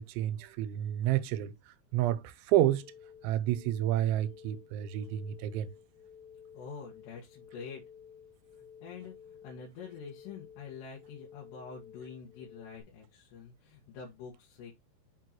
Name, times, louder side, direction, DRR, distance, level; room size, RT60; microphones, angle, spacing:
voice 1, 0.0-2.8 3.2-5.7, right 13 dB, 85° right, 3.0 m, -30 dB
sound 1, 2.8-12.8, left 7 dB, 30° left, 2.5 m, -53 dB
voice 2, 6.5-7.8 8.8-14.7, left 6 dB, 70° left, 3.7 m, -46 dB
6.8 x 6.5 x 3.0 m
omnidirectional pair, 5.3 m